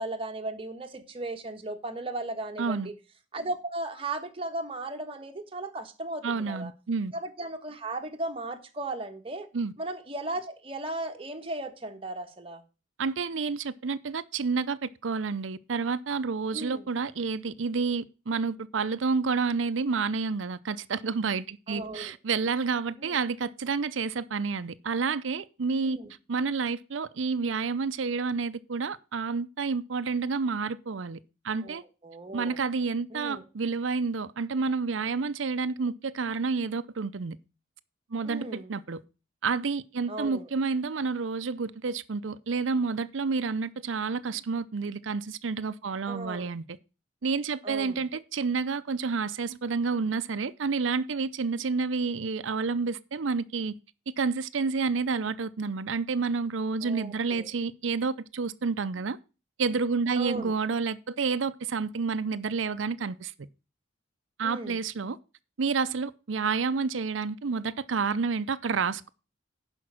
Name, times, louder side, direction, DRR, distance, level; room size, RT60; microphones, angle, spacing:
voice 1, 0.0-2.9 3.3-6.7 7.1-9.5 9.8-12.6 16.5-16.8 21.7-22.1 23.0-23.2 25.8-26.1 31.6-32.6 33.1-33.4 38.2-38.7 40.1-40.5 46.1-46.5 47.6-48.0 56.8-57.5 60.2-60.5 64.4-64.8, right 2 dB, 30° right, 1.4 m, -36 dB
voice 2, 2.6-2.9 6.2-7.1 9.5-9.7 13.0-26.0 26.3-31.2 31.4-31.8 32.3-37.4 38.1-39.0 39.4-46.6 47.2-53.8 54.2-59.2 59.6-63.3 64.4-65.2 65.6-69.1, right 4 dB, 85° right, 0.6 m, -29 dB
11.0 x 5.3 x 6.0 m
head